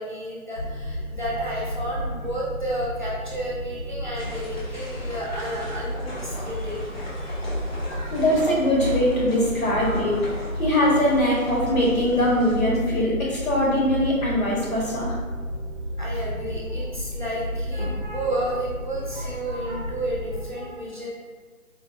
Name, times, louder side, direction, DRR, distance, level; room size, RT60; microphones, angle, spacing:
voice 1, 0.0-6.8 7.2-7.4 7.8-8.2 10.9-11.0 16.0-21.1, right 1 dB, 35° right, -6 dB, 0.6 m, -31 dB
sound 1, 0.5-20.4, equal, 10° left, 0.9 m, -32 dB
sound 2, 4.1-12.6, left 1 dB, 45° left, 0.8 m, -40 dB
voice 2, 8.1-10.3 10.6-15.2, left 1 dB, 70° left, -4 dB, 1.3 m, -22 dB
3.9 x 2.2 x 2.5 m, 1.5 s
figure-of-eight pair, 165°, 43 cm